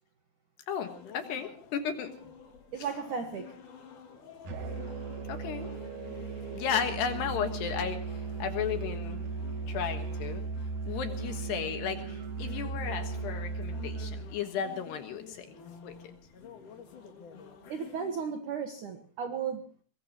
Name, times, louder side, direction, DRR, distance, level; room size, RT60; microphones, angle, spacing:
voice 1, 0.7-2.1 5.3-5.7 6.5-8.0 8.4-9.2 9.7-10.4 10.9-15.5 15.8-16.0, left 7 dB, 65° left, 7 dB, 3.1 m, -34 dB
sound 1, 0.8-18.2, left 6 dB, 50° left, 3.0 m, -50 dB
voice 2, 2.7-3.6 17.7-19.6, right 6 dB, 70° right, 6 dB, 1.9 m, -35 dB
Musical instrument, 4.4-14.3, right 4 dB, 55° right, 2.6 m, -37 dB
23.5 x 21.0 x 3.0 m, 0.40 s
omnidirectional pair, 5.9 m